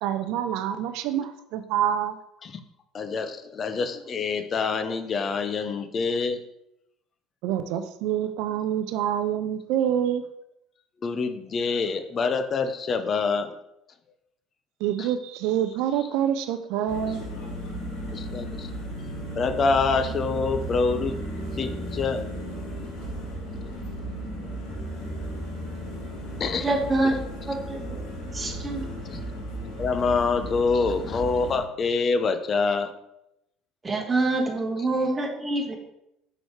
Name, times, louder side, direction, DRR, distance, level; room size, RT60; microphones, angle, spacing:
voice 1, 0.0-2.2 7.4-10.2 14.8-17.2, right 10 dB, 70° right, 10 dB, 0.4 m, -26 dB
voice 2, 2.9-6.4 11.0-13.6 15.0-15.1 18.1-18.7 19.4-21.2 21.6-22.2 26.4-26.7 29.1-29.2 29.8-32.9, left 4 dB, 40° left, 9 dB, 0.6 m, -26 dB
sound 1, 16.9-31.6, right 1 dB, 70° left, 1.8 m, -35 dB
voice 3, 26.6-27.1 27.4-28.0 28.3-28.9 33.8-35.7, right 2 dB, 20° right, 1 dB, 1.5 m, -26 dB
6.1 x 4.9 x 3.2 m, 0.82 s
hypercardioid pair, 75°, 0 cm